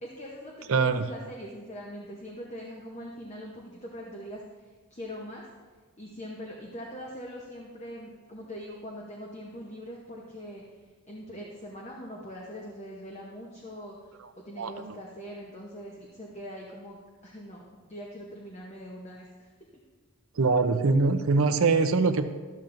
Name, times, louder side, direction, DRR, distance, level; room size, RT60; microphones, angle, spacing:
voice 1, 0.0-4.4 4.9-5.5 6.0-10.6 11.1-17.0 17.2-19.7, equal, 30° left, -2 dB, 0.8 m, -42 dB
voice 2, 0.7-1.1 14.6-15.0 20.3-22.3, right 4 dB, 75° right, 9 dB, 0.5 m, -23 dB
13.0 x 7.2 x 2.6 m, 1.4 s
head